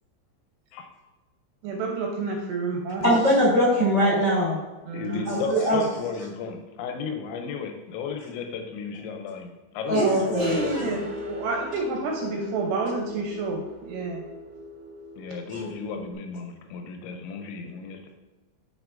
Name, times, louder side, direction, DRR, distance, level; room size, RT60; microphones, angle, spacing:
voice 1, 1.6-3.1 4.9-5.2 9.9-14.2, right 3 dB, 80° right, 1 dB, 2.5 m, -29 dB
voice 2, 3.0-4.5 5.2-5.8 9.9-10.6, equal, 35° left, -8 dB, 1.7 m, -21 dB
voice 3, 4.9-11.0 15.2-18.1, left 5 dB, 85° left, 4 dB, 2.9 m, -34 dB
sound 1, 10.4-16.1, left 1 dB, 60° right, 1.9 m, -39 dB
6.8 x 6.1 x 2.5 m, 1.1 s
omnidirectional pair, 5.3 m